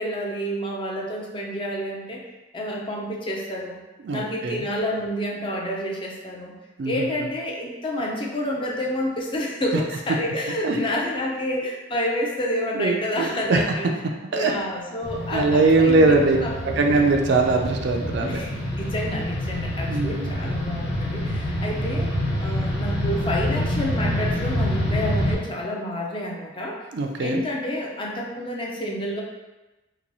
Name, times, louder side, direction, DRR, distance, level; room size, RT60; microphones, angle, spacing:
voice 1, 0.0-2.2 2.5-3.8 4.1-6.5 6.9-13.9 14.3-17.0 18.2-18.5 18.8-22.1 22.4-26.8 27.2-29.2, equal, 25° left, -2 dB, 0.5 m, -29 dB
voice 2, 4.0-4.7 6.8-7.0 9.7-9.8 10.6-10.7 12.8-13.6 14.3-14.5 15.3-16.4 16.8-18.4 19.9-20.3 26.9-27.4, right 3 dB, 60° right, 2 dB, 0.4 m, -21 dB
sound 1, 15.0-25.3, left 1 dB, 55° left, 1.0 m, -27 dB
2.9 x 2.2 x 3.9 m, 1.1 s
head